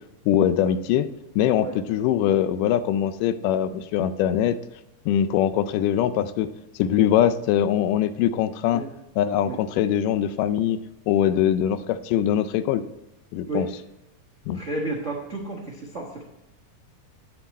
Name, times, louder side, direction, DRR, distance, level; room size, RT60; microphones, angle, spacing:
voice 1, 0.3-1.1 1.4-4.6 5.1-6.5 6.8-8.8 9.2-10.8 11.1-12.8 13.3-13.7 14.5-14.6, left 10 dB, 85° left, 12 dB, 2.1 m, -22 dB
voice 2, 14.5-16.2, right 2 dB, 60° right, -2 dB, 0.7 m, -31 dB
9.0 x 7.7 x 4.1 m, 0.92 s
omnidirectional pair, 3.8 m